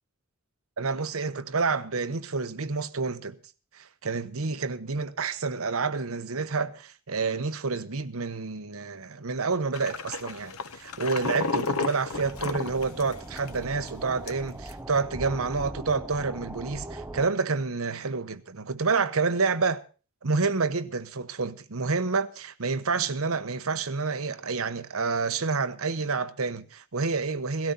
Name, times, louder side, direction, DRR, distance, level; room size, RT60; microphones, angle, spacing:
voice 1, 0.8-3.4 3.7-19.8 20.2-27.7, right 4 dB, 75° right, 1.0 m, -29 dB
sound 1, 9.7-13.6 13.9-14.0 14.3-14.7, left 4 dB, 85° left, 1.0 m, -32 dB
sound 2, 12.1-17.3, right 1 dB, 10° right, 0.9 m, -40 dB
17.5 x 13.0 x 4.1 m
head